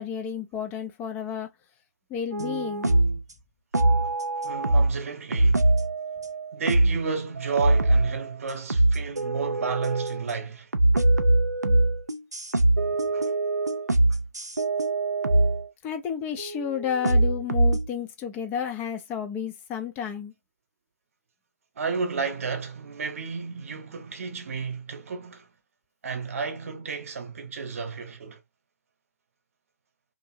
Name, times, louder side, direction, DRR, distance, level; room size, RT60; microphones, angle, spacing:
voice 1, 0.0-1.5 2.1-2.9 15.8-20.3, left 8 dB, 20° left, 0.4 m, -31 dB
sound 1, 2.3-3.2 3.7-5.0 5.3-7.0 7.4-8.3 8.7-10.3 10.7-15.7 16.4-17.9, right 2 dB, 85° right, 0.4 m, -23 dB
voice 2, 4.4-5.7 6.5-10.7 13.1-13.3 21.8-25.5 26.0-28.4, right 5 dB, 55° right, 0.8 m, -32 dB
2.6 x 2.5 x 2.7 m
figure-of-eight pair, 125°, 9 cm